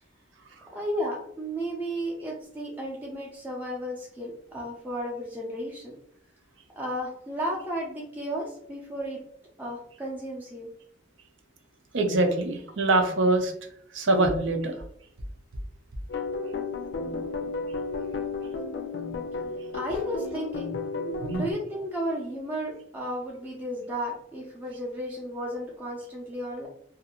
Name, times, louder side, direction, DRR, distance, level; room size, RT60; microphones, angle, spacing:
voice 1, 0.7-6.0 6.8-9.2 9.6-10.7 19.7-20.7 21.0-26.7, equal, 10° right, -4 dB, 0.5 m, -33 dB
voice 2, 11.9-13.5 13.9-14.8 21.2-21.5, right 2 dB, 90° right, 4 dB, 0.6 m, -24 dB
sound 1, 16.1-21.5, left 4 dB, 85° left, 0.5 m, -33 dB
2.5 x 2.4 x 2.8 m, 0.67 s
head